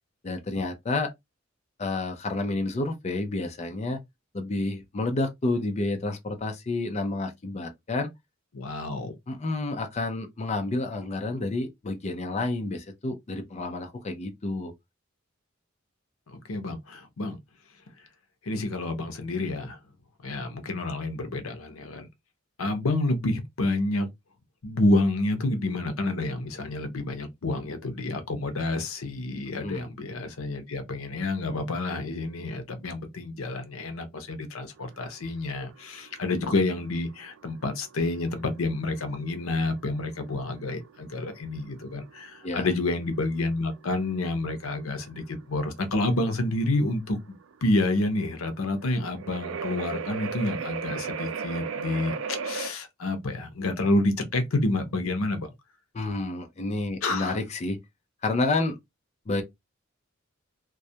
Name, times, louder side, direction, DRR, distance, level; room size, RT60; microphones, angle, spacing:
voice 1, 0.2-1.1 1.8-4.0 4.3-8.1 9.3-14.7 29.6-29.8 42.4-42.7 55.9-57.8 58.2-58.8 59.3-59.4, left 2 dB, 35° left, 0.4 m, -29 dB
voice 2, 8.5-9.1 16.3-17.4 18.4-19.8 20.2-22.1 22.6-24.1 24.6-47.2 47.6-55.5 57.0-57.4, left 2 dB, 85° left, 0.6 m, -29 dB
sound 1, 34.8-52.7, right 5 dB, 70° right, 0.4 m, -38 dB
2.3 x 2.1 x 2.7 m
head